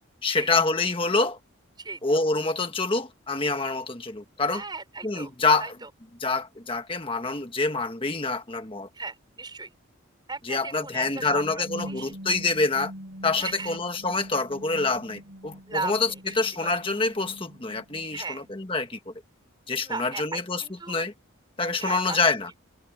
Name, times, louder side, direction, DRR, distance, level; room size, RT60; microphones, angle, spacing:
voice 1, 0.2-1.4 2.0-4.6 5.0-5.7 6.2-8.9 10.4-12.9 13.2-16.1 16.3-19.1 19.7-21.1 21.6-22.5, left 3 dB, 25° left, 1.4 m, -26 dB
voice 2, 4.5-5.3 5.6-5.9 8.9-9.7 10.3-12.1 13.4-13.8 15.7-15.9 18.1-18.4 19.8-21.0 21.8-22.2, right 4 dB, 20° right, 6.0 m, -36 dB
sound 1, 10.9-18.5, equal, 70° right, 4.4 m, -43 dB
head